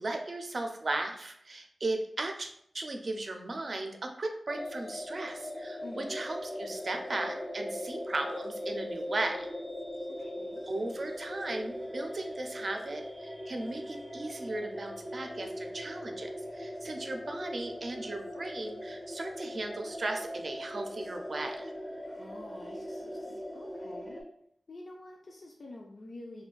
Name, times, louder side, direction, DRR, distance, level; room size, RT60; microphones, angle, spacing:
voice 1, 0.0-9.5 10.7-21.7, right 2 dB, 55° right, 4 dB, 0.4 m, -36 dB
sound 1, 4.5-24.2, equal, ahead, 0.4 m, -40 dB
voice 2, 5.8-6.2 10.1-10.7 22.0-24.3 24.7-26.4, left 2 dB, 70° left, -1 dB, 0.4 m, -48 dB
2.4 x 2.2 x 3.8 m, 0.69 s
cardioid pair, 60°, 0 cm